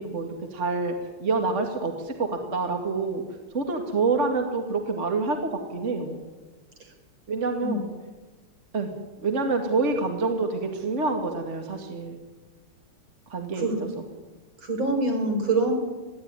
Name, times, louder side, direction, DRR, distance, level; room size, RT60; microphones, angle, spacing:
voice 1, 0.0-3.2 3.5-6.2 7.3-7.9 8.7-8.9 9.2-12.2 13.3-13.9, right 3 dB, 35° right, 4 dB, 2.4 m, -27 dB
voice 2, 13.6-13.9 14.6-15.7, right 2 dB, 65° right, 3 dB, 5.5 m, -25 dB
21.5 x 15.5 x 9.8 m, 1.3 s
omnidirectional pair, 2.3 m